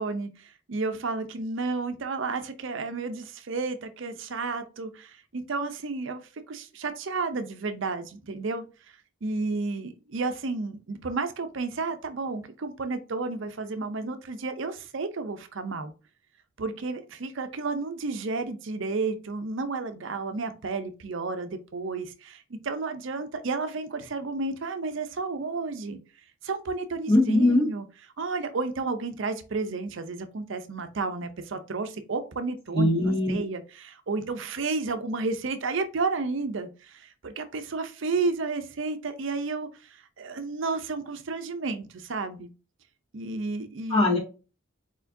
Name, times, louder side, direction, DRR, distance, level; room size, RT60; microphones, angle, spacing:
voice 1, 0.0-8.7 9.2-15.9 16.6-26.0 26.4-27.8 28.2-32.9 33.3-42.5 43.1-44.1, right 3 dB, 60° right, 0.5 m, -32 dB
voice 2, 27.1-27.6 32.7-33.4 43.9-44.2, left 1 dB, 25° left, 1.8 m, -21 dB
4.7 x 4.3 x 2.6 m
head